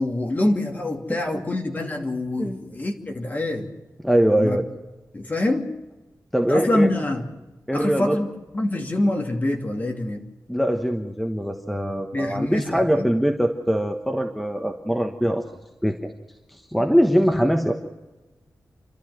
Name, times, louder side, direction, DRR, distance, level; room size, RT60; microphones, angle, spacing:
voice 1, 0.0-3.7 4.4-4.6 5.1-5.7 6.4-7.3 7.7-8.3 8.5-10.3 12.1-13.1, left 1 dB, 30° left, 3 dB, 2.6 m, -25 dB
voice 2, 4.0-4.7 6.3-6.9 7.7-8.2 10.5-15.4 15.8-16.1 16.5-17.7, equal, ahead, 4 dB, 1.2 m, -22 dB
30.0 x 12.5 x 7.7 m, 1.1 s
wide cardioid pair, 165°, 6 cm